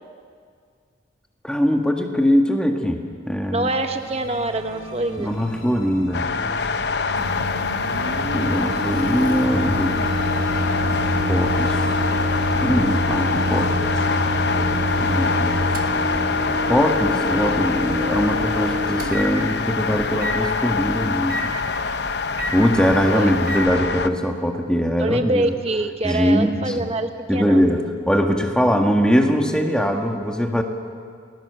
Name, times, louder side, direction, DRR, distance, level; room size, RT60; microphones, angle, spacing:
voice 1, 1.4-3.0 3.3-3.7 5.2-6.3 8.3-10.0 11.3-11.8 12.6-13.7 15.0-15.6 16.7-21.5 22.5-25.5 26.0-26.9 27.3-30.6, equal, 5° left, 3 dB, 1.8 m, -21 dB
voice 2, 3.5-5.3 23.1-23.3 25.0-27.6, right 2 dB, 30° right, 7 dB, 1.0 m, -25 dB
sound 1, 3.7-18.0, equal, 85° left, 4.8 m, -35 dB
sound 2, 6.1-24.1, left 4 dB, 55° left, 0.8 m, -25 dB
Microwave oven, 7.2-23.6, equal, 50° right, 1.6 m, -27 dB
29.0 x 20.0 x 7.0 m, 2.1 s
head